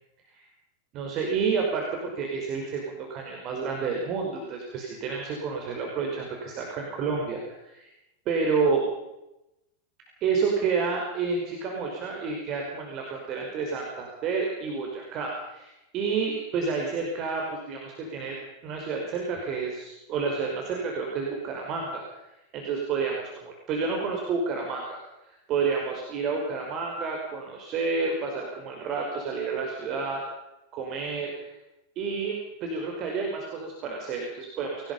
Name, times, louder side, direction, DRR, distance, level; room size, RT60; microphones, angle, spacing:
voice 1, 0.9-7.9 8.3-8.8 10.2-18.4 18.6-22.2 22.5-30.2 30.7-31.5 32.0-34.9, right 5 dB, 35° right, 1 dB, 5.3 m, -30 dB
27.0 x 18.5 x 5.6 m, 0.91 s
figure-of-eight pair, 90°, 0 cm